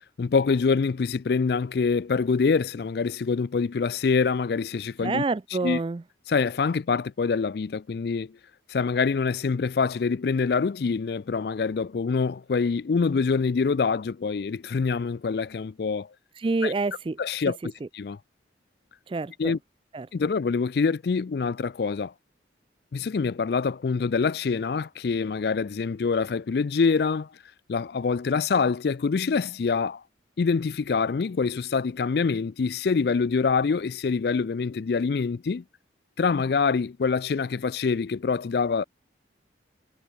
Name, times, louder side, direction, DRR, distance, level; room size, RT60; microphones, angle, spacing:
voice 1, 0.2-5.2 5.6-5.8 6.3-8.3 8.7-16.1 16.6-16.7 17.2-18.2 19.4-19.6 20.1-22.1 22.9-27.3 27.7-30.0 30.4-35.6 36.2-38.8, left 5 dB, 55° left, 0.4 m, -25 dB
voice 2, 5.0-6.0 16.4-17.2 17.8-17.9 19.1-19.5 19.9-20.1, right 3 dB, 30° right, 0.3 m, -27 dB
head